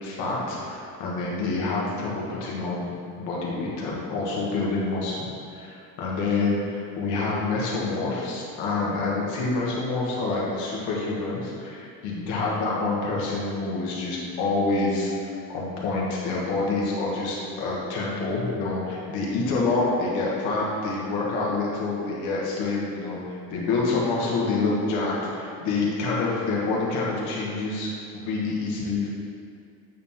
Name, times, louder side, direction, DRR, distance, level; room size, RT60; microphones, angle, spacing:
voice 1, 0.0-29.1, left 3 dB, 85° left, -4 dB, 1.6 m, -27 dB
8.4 x 4.5 x 3.7 m, 2.5 s
cardioid pair, 175°, 30 cm